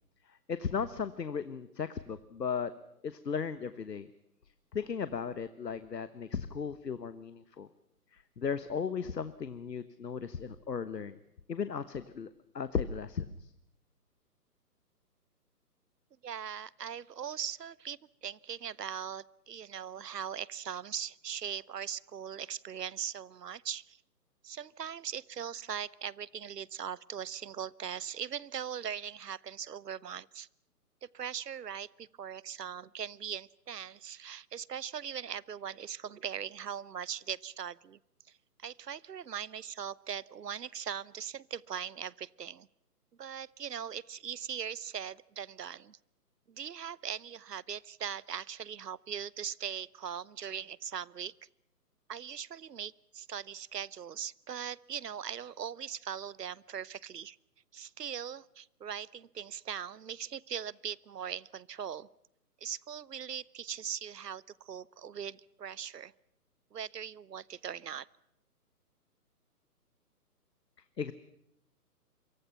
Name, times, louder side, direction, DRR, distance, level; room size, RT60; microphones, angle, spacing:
voice 1, 0.3-2.7 3.0-4.1 4.7-7.7 8.1-11.2 11.5-13.5 71.0-71.1, left 6 dB, 85° left, 13 dB, 1.3 m, -36 dB
voice 2, 16.2-24.0 24.4-30.5 31.0-38.0 38.6-42.7 43.2-46.0 46.5-51.3 52.1-57.4 57.7-62.1 62.6-66.1 66.7-68.1, right 8 dB, 80° right, 24 dB, 0.9 m, -40 dB
28.5 x 24.0 x 5.8 m, 0.79 s
figure-of-eight pair, 145°, 48 cm